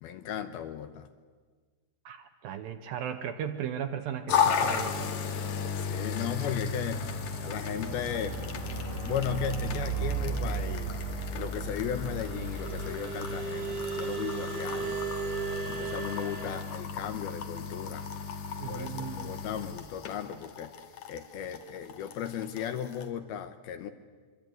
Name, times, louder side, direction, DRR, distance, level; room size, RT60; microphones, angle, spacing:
voice 1, 0.0-1.1 5.7-7.1 7.4-8.4 9.0-11.0 11.3-15.0 15.7-18.1 18.7-20.7 21.1-23.9, left 9 dB, 70° left, 10 dB, 2.5 m, -36 dB
voice 2, 2.1-5.3 18.6-19.3, right 8 dB, 70° right, 8 dB, 2.3 m, -36 dB
sound 1, 4.3-23.1, left 6 dB, 55° left, 2.4 m, -35 dB
sound 2, 6.2-16.6, right 6 dB, 85° right, 8.4 m, -35 dB
25.5 x 24.5 x 9.2 m, 1.5 s
omnidirectional pair, 5.1 m